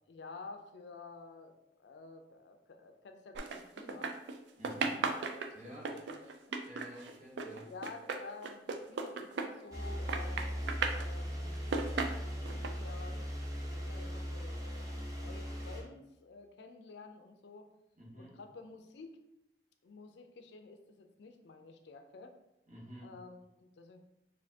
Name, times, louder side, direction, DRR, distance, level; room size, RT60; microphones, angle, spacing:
voice 1, 0.1-1.5 1.8-4.2 4.7-4.8 5.1-6.5 7.4-10.6 10.9-11.6 12.5-13.3 13.6-17.7 18.2-19.2 19.8-22.3 23.0-24.0, left 3 dB, 70° left, 6 dB, 0.4 m, -51 dB
sound 1, 3.3-4.4 4.6-9.8 10.1-11.1 11.5-12.7, right 4 dB, 75° right, 0.4 m, -36 dB
voice 2, 4.6-5.1 5.5-5.9 6.6-7.7 17.9-18.4 22.7-23.2, right 1 dB, 45° right, -5 dB, 1.2 m, -50 dB
sound 2, 9.7-15.8, equal, 20° right, 0.7 m, -39 dB
4.1 x 2.6 x 2.7 m, 0.87 s
head